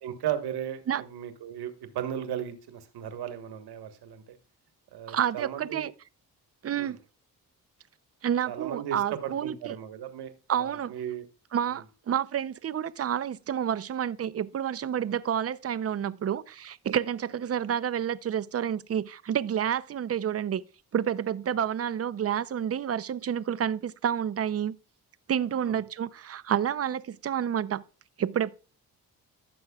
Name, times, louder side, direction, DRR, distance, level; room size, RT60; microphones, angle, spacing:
voice 1, 0.0-4.4 4.9-5.9 6.7-7.0 8.5-10.3 10.6-11.3 11.7-11.8 25.6-25.8, right 10 dB, 80° right, 1.4 m, -36 dB
voice 2, 5.1-5.9 6.6-7.0 8.2-9.7 10.5-10.9 11.5-20.6 20.9-24.8 25.3-27.8 28.2-28.5, right 9 dB, 40° right, 0.6 m, -29 dB
15.0 x 6.2 x 2.4 m
cardioid pair, 65°, 39 cm